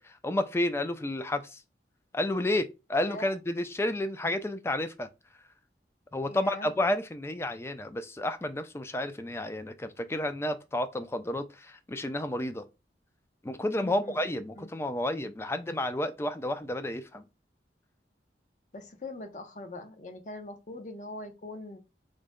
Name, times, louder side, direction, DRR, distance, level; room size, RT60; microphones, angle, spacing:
voice 1, 0.0-1.6 2.1-5.1 6.1-12.6 13.4-17.3, left 1 dB, 15° left, 0.3 m, -31 dB
voice 2, 6.3-6.7 13.8-14.2 14.5-14.7 18.7-21.8, left 2 dB, 45° left, 0.7 m, -42 dB
3.8 x 2.1 x 3.6 m
head